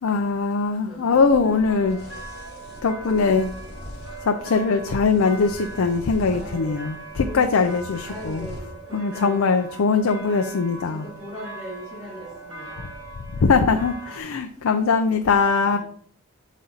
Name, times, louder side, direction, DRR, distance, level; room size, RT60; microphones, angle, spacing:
voice 1, 0.0-2.0 2.8-3.5 4.2-8.5 8.9-11.1 13.4-15.8, left 4 dB, 65° left, 6 dB, 0.5 m, -21 dB
voice 2, 0.8-1.2 6.3-7.5 8.0-9.4 10.0-10.2 10.9-12.9 15.6-15.8, equal, 20° right, -8 dB, 2.4 m, -39 dB
sound 1, 1.1-8.6, left 1 dB, 45° left, 1.2 m, -42 dB
sound 2, 1.4-14.2, right 3 dB, 50° right, 3.1 m, -41 dB
7.8 x 4.1 x 4.0 m, 0.62 s
head